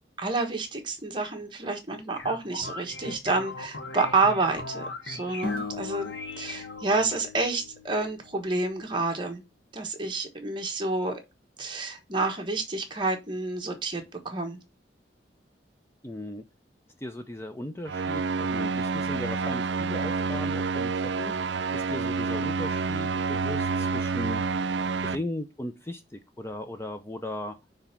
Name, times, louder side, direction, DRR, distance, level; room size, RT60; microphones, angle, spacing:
voice 1, 0.2-9.4 9.7-11.2 11.6-14.6, right 3 dB, 25° right, 1.3 m, -29 dB
sound 1, 1.9-7.1, left 2 dB, 75° left, 1.4 m, -39 dB
sound 2, 5.4-8.6, left 4 dB, 60° left, 1.0 m, -38 dB
voice 2, 16.0-16.4 17.0-20.9 21.2-21.3 21.7-24.4 25.0-27.6, left 1 dB, 15° left, 0.5 m, -37 dB
sound 3, 17.9-25.1, right 4 dB, 80° right, 0.5 m, -28 dB
6.0 x 3.4 x 5.7 m
head